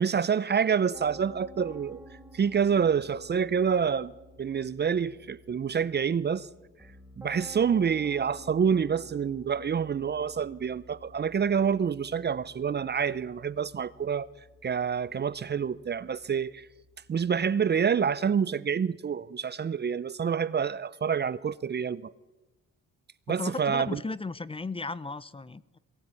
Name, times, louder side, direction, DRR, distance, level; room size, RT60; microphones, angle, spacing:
voice 1, 0.0-2.0 2.3-4.1 4.4-6.5 7.2-14.3 14.6-16.7 17.1-22.1 23.3-24.0, right 7 dB, 35° right, 0.6 m, -27 dB
Piano, 0.9-18.0, equal, 5° right, 4.9 m, -52 dB
voice 2, 23.3-25.8, left 3 dB, 20° left, 0.8 m, -35 dB
22.0 x 17.5 x 9.7 m
cardioid pair, 90°, 30 cm